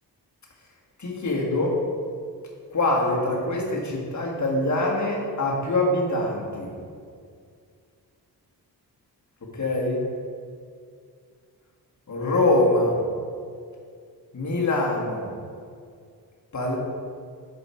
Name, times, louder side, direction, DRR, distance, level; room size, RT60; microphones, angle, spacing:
voice 1, 1.0-1.8 2.7-6.7 9.5-10.0 12.1-13.0 14.3-15.3 16.5-16.8, left 2 dB, 40° left, -3 dB, 1.7 m, -24 dB
6.9 x 5.3 x 4.3 m, 2.2 s
cardioid pair, 65°, 42 cm